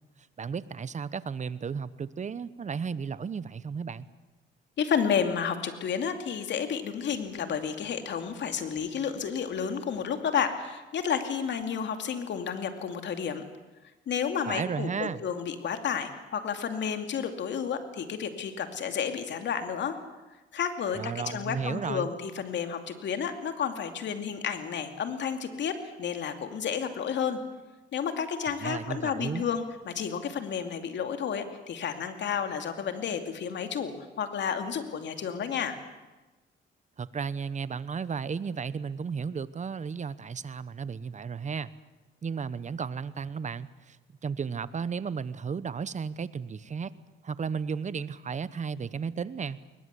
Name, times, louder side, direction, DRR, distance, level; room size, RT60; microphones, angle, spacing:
voice 1, 0.4-4.1 14.5-15.2 20.9-22.1 28.6-29.5 37.0-41.7 42.2-44.0 44.2-46.9 47.2-49.6, right 6 dB, 35° right, 16 dB, 1.0 m, -34 dB
voice 2, 4.8-13.4 14.1-19.9 20.5-27.4 27.9-35.8, left 7 dB, 65° left, 7 dB, 2.6 m, -31 dB
21.5 x 20.5 x 8.4 m, 1.1 s
cardioid pair, 90°, 20 cm